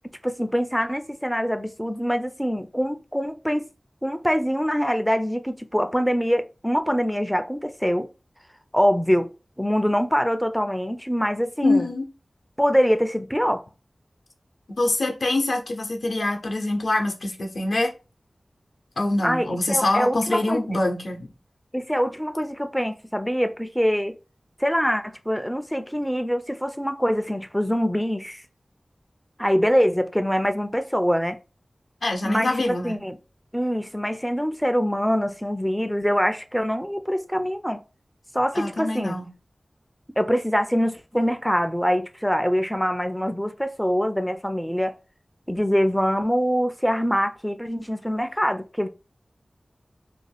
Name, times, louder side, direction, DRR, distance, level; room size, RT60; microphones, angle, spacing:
voice 1, 0.2-3.7 4.0-8.1 8.7-9.3 9.6-11.9 12.6-13.6 19.2-20.6 21.7-24.2 24.6-28.4 29.4-31.4 32.2-32.5 32.8-33.2 33.5-37.8 38.3-39.2 40.2-44.9 45.5-48.9, equal, ahead, 0.3 m, -24 dB
voice 2, 11.6-12.1 14.8-17.9 19.0-21.3 32.0-33.0 38.5-39.3, left 2 dB, 80° left, 0.6 m, -24 dB
2.5 x 2.1 x 3.3 m
cardioid pair, 40°, 0 cm